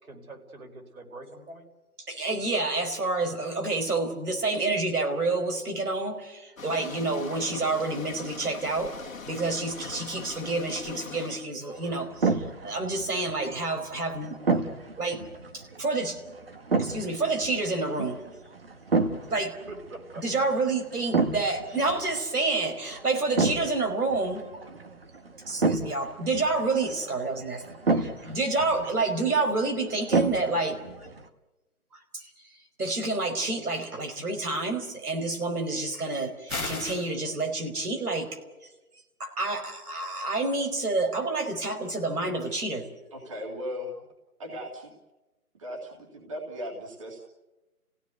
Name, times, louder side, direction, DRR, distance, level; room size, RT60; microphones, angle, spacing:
voice 1, 0.0-1.6 19.2-19.3 19.7-20.3, right 2 dB, 70° right, 2 dB, 5.1 m, -44 dB
voice 2, 2.1-8.9 9.2-14.4 15.0-15.2 15.5-16.2 16.8-18.2 19.3-19.5 20.2-24.4 25.5-27.6 27.9-30.8 32.1-32.2 32.8-38.3 39.2-42.8, right 3 dB, 90° right, 4 dB, 5.0 m, -28 dB
sound 1, 6.6-11.5, left 5 dB, 65° left, 1.7 m, -41 dB
sound 2, 11.7-31.3, right 3 dB, 40° right, 1.4 m, -32 dB
sound 3, 36.5-37.1, left 3 dB, 5° right, 1.4 m, -32 dB
voice 3, 43.1-43.9 44.4-44.9 45.5-47.2, equal, 20° right, 0 dB, 2.2 m, -37 dB
29.5 x 16.5 x 8.1 m, 1.1 s
hypercardioid pair, 175°, 44 cm